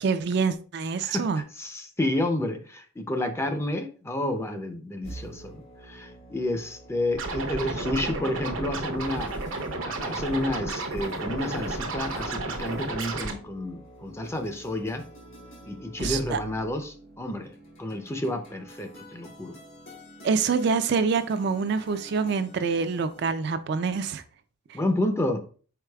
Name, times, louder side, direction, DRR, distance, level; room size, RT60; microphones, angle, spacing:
voice 1, 0.0-1.4 16.0-16.4 20.2-24.2 24.7-24.8, right 5 dB, 55° right, 0.4 m, -26 dB
voice 2, 1.0-9.3 9.8-15.0 15.7-19.5 24.7-25.4, left 1 dB, 15° left, 0.5 m, -30 dB
sound 1, 5.0-23.3, equal, 85° left, 2.0 m, -47 dB
Scratching (performance technique), 7.1-13.3, right 2 dB, 80° right, 0.8 m, -32 dB
4.8 x 4.7 x 2.3 m
head